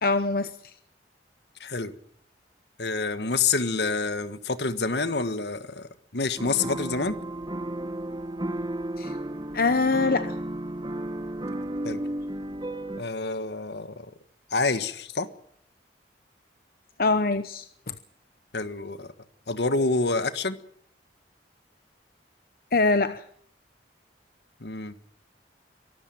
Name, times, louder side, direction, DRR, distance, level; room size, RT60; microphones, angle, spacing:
voice 1, 0.0-0.7 9.0-9.1 9.5-10.3 17.0-17.9 22.7-23.2, left 3 dB, 55° left, 11 dB, 0.9 m, -24 dB
voice 2, 1.6-1.9 2.8-7.2 11.8-12.0 13.0-14.1 14.5-15.3 18.5-19.1 19.5-20.6 24.6-24.9, left 3 dB, 75° left, 12 dB, 1.5 m, -27 dB
sound 1, 6.4-13.0, right 1 dB, 25° right, 1.4 m, -33 dB
23.5 x 13.5 x 9.1 m, 0.66 s
head